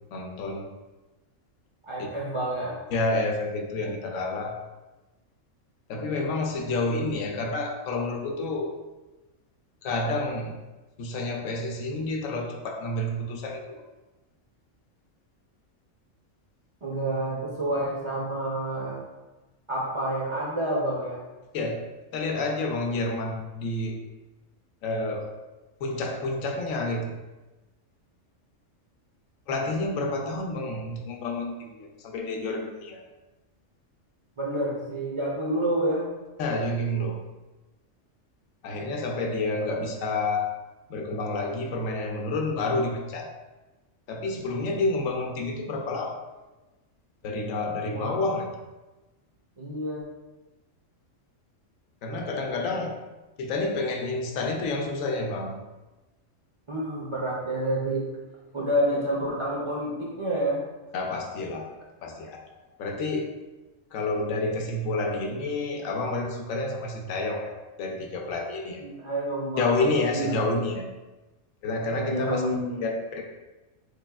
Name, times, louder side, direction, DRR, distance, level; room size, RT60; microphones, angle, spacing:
voice 1, 0.1-0.7 2.0-2.1 2.9-4.6 5.9-8.7 9.8-10.5 11.0-13.8 21.5-21.8 22.1-24.0 24.8-25.3 25.8-27.1 29.5-33.0 36.4-37.2 38.6-40.5 40.9-43.3 44.1-46.2 47.2-48.5 52.0-52.9 53.4-55.6 60.9-61.7 62.0-62.4 62.8-63.3 63.9-68.8 69.6-70.9 71.6-72.4 72.8-73.2, left 2 dB, 85° left, 3 dB, 1.0 m, -29 dB
voice 2, 1.8-2.8 16.8-19.0 19.7-21.2 34.4-36.1 47.9-48.2 49.6-50.0 56.7-58.1 58.5-60.6 68.8-69.8 70.1-70.4 72.0-72.8, right 1 dB, 55° right, -5 dB, 0.3 m, -28 dB
4.0 x 3.4 x 2.2 m, 1.1 s
omnidirectional pair, 1.4 m